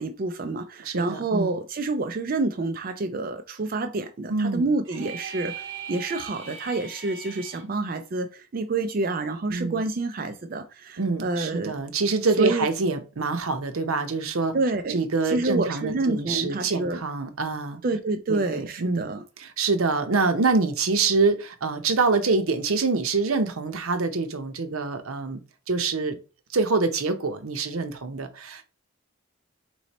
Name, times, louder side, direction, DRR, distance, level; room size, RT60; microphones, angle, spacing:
voice 1, 0.0-11.8 12.4-12.7 14.5-15.0 15.2-17.0 17.8-19.2, right 3 dB, 40° right, 0.4 m, -28 dB
voice 2, 0.8-1.6 4.3-4.7 9.5-9.8 11.0-14.5 14.9-17.8 18.3-19.1 19.4-25.4 25.7-26.2 26.5-28.6, right 4 dB, 85° right, 0.7 m, -25 dB
sound 1, 4.8-7.6, right 6 dB, 60° right, 1.2 m, -39 dB
3.9 x 3.1 x 4.1 m
head